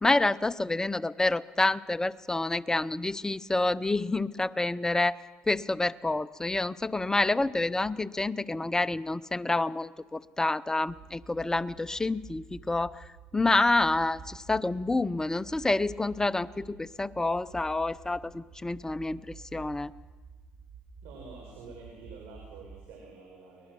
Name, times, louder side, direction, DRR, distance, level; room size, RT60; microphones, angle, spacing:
voice 1, 0.0-5.2 5.5-13.0 13.3-19.9, left 2 dB, 15° left, 16 dB, 0.7 m, -28 dB
sound 1, 10.9-22.9, right 5 dB, 45° right, 4.0 m, -50 dB
voice 2, 21.0-23.7, right 4 dB, 85° right, -1 dB, 5.2 m, -48 dB
23.5 x 19.5 x 6.2 m, 1.3 s
supercardioid pair, 80°, 4 cm